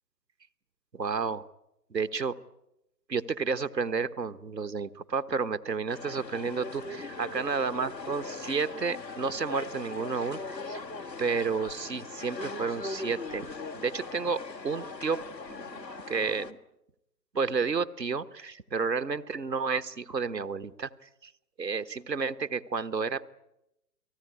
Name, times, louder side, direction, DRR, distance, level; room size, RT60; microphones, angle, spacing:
voice 1, 0.9-1.5 1.9-2.3 3.1-10.8 11.2-13.5 13.7-15.2 15.5-16.6 17.3-20.9 21.2-21.3 21.6-23.3, right 5 dB, 85° right, 12 dB, 1.3 m, -31 dB
sound 1, 5.9-16.5, left 3 dB, 85° left, 1.9 m, -40 dB
30.0 x 19.5 x 9.7 m, 0.89 s
figure-of-eight pair, 125°, 48 cm